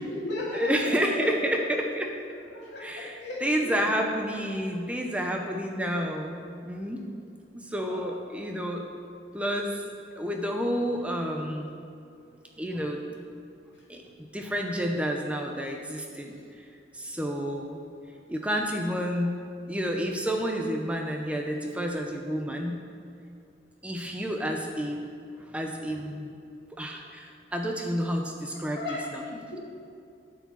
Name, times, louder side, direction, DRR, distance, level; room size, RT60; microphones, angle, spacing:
voice 1, 0.0-1.3 2.5-3.8 7.9-8.0 17.1-17.3 28.5-29.6, left 2 dB, 80° left, -5 dB, 2.4 m, -36 dB
voice 2, 0.5-2.1 2.8-7.0 7.5-8.8 9.3-9.8 10.2-11.7 12.6-13.0 13.9-16.7 16.9-17.8 18.3-22.8 23.8-25.0 25.4-26.3 26.8-28.8 29.1-29.2, equal, 5° right, 2 dB, 0.6 m, -30 dB
9.2 x 4.9 x 7.1 m, 2.5 s
head